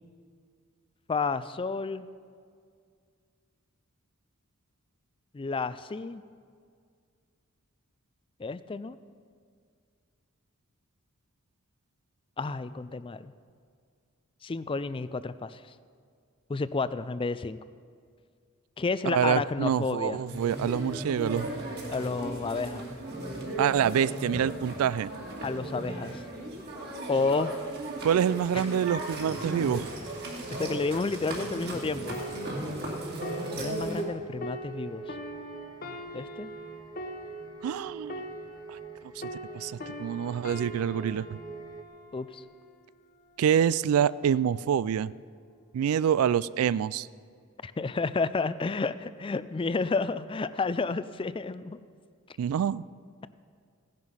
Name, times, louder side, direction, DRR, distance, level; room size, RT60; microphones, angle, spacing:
voice 1, 1.1-2.1 5.3-6.2 8.4-9.0 12.4-13.3 14.4-15.6 16.5-17.6 18.8-20.2 21.9-22.9 25.4-26.2 27.1-27.5 30.5-32.2 33.5-35.1 36.1-36.5 42.1-42.4 47.6-51.8, left 4 dB, 25° left, 15 dB, 0.4 m, -31 dB
voice 2, 19.1-21.5 23.6-25.1 28.0-29.9 37.6-38.2 38.7-38.8 39.2-39.3 39.5-41.4 43.4-45.1 45.7-47.1 52.4-52.8, right 8 dB, 70° right, 20 dB, 0.3 m, -26 dB
sound 1, 20.3-34.0, right 1 dB, 45° right, 2.4 m, -36 dB
sound 2, 27.1-41.8, right 5 dB, 20° right, 0.9 m, -45 dB
sound 3, 32.1-39.0 39.2-42.8 43.4-43.7, equal, 40° left, 0.9 m, -43 dB
16.0 x 10.5 x 5.6 m, 2.1 s
head